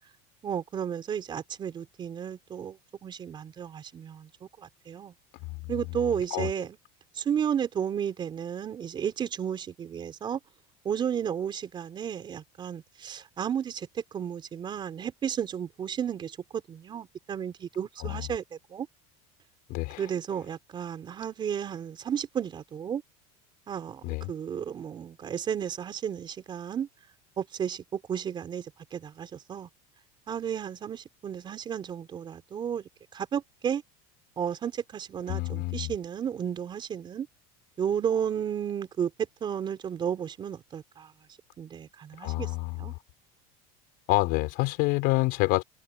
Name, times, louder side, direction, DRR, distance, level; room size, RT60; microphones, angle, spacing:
voice 1, 0.4-5.1 5.7-6.8 7.2-10.4 10.8-18.9 20.0-23.0 23.7-26.9 27.4-29.7 30.3-33.8 34.4-37.3 37.8-39.1 39.4-41.1 41.6-42.5 42.8-42.9, right 8 dB, 25° right, 4.5 m, -33 dB
voice 2, 5.4-5.7 6.3-6.5 18.0-18.3 19.7-20.0 24.0-24.3 35.3-35.9 42.2-43.0 44.1-45.6, left 23 dB, 55° left, 4.0 m, -28 dB
cardioid pair, 165°, 19 cm